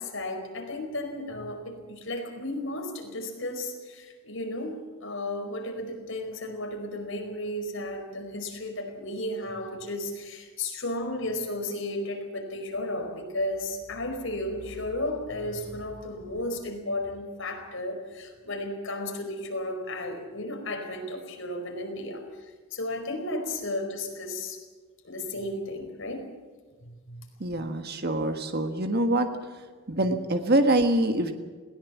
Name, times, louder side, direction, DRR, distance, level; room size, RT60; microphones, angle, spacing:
voice 1, 0.0-22.2 22.7-24.6 25.0-26.3 26.8-27.2, left 1 dB, 60° left, 3 dB, 4.9 m, -34 dB
voice 2, 27.4-29.3 29.9-31.3, right 1 dB, 45° right, 6 dB, 1.5 m, -24 dB
21.5 x 18.5 x 7.4 m, 1.4 s
head